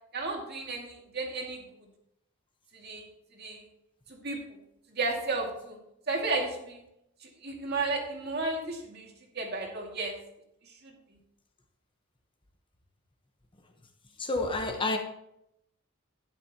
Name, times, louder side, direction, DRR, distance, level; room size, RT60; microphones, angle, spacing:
voice 1, 0.1-1.6 2.7-3.1 3.4-3.6 4.1-4.4 4.9-5.8 6.1-6.8 7.2-9.1 9.3-10.2 10.8-10.9, right 3 dB, 50° right, 1 dB, 2.2 m, -33 dB
voice 2, 14.2-15.0, left 2 dB, 25° left, 4 dB, 1.0 m, -29 dB
12.0 x 10.0 x 2.9 m, 0.79 s
head